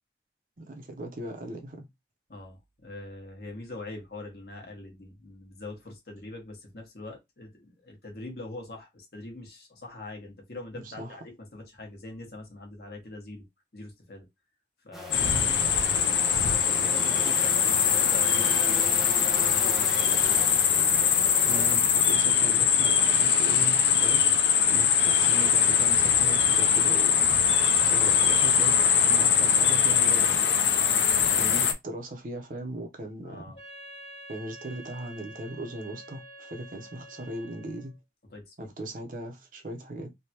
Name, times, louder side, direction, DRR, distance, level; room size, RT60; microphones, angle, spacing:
voice 1, 0.6-1.9 10.8-11.2 15.1-15.6 21.5-24.2 24.7-27.2 27.8-28.8 29.0-30.7 31.3-33.4 34.3-38.0 38.6-40.1, right 1 dB, 50° right, 0.7 m, -38 dB
voice 2, 2.3-13.4 13.7-14.3 14.8-15.4 16.7-20.5 31.3-31.4 33.2-33.6 38.3-38.7, left 2 dB, 60° left, 1.2 m, -43 dB
sound 1, 14.9-21.8, equal, ahead, 0.5 m, -40 dB
sound 2, 15.1-31.7, left 7 dB, 85° left, 0.5 m, -22 dB
Wind instrument woodwind instrument, 33.5-38.0, right 1 dB, 35° left, 1.3 m, -47 dB
3.3 x 2.2 x 2.8 m
head